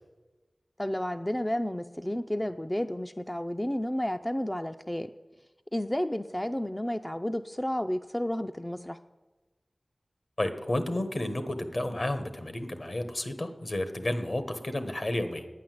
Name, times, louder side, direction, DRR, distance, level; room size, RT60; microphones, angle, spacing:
voice 1, 0.8-5.1 5.7-9.0, left 1 dB, 15° left, 8 dB, 0.4 m, -31 dB
voice 2, 10.4-15.5, left 1 dB, 60° left, 9 dB, 1.3 m, -31 dB
10.0 x 9.2 x 7.7 m, 1.2 s
wide cardioid pair, 65°, 0 cm